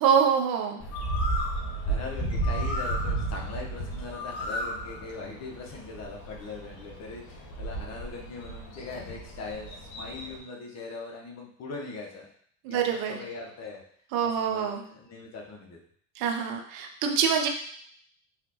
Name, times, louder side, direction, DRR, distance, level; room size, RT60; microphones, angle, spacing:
voice 1, 0.0-0.8 12.7-13.2 14.1-14.8 16.2-17.5, right 7 dB, 60° right, 3 dB, 0.8 m, -25 dB
Bird, 0.8-10.4, right 1 dB, 65° left, 1.4 m, -33 dB
voice 2, 1.9-12.3 12.7-13.8 14.2-15.8, left 3 dB, 40° left, -1 dB, 1.2 m, -40 dB
3.9 x 3.3 x 3.1 m, 0.62 s
hypercardioid pair, 80°, 40 cm